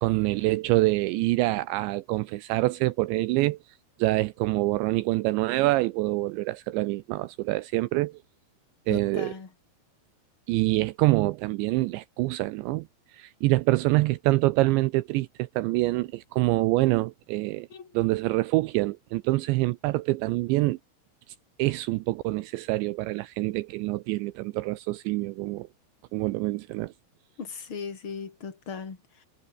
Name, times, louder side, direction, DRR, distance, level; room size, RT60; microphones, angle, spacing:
voice 1, 0.0-3.6 4.0-8.2 8.9-9.3 10.5-12.9 13.1-17.7 17.9-20.8 21.3-25.7 26.1-26.9, right 20 dB, 80° right, 2.8 m, -26 dB
voice 2, 8.9-9.5 17.7-18.0 27.4-29.2, left 5 dB, 30° left, 3.7 m, -38 dB
omnidirectional pair, 5.6 m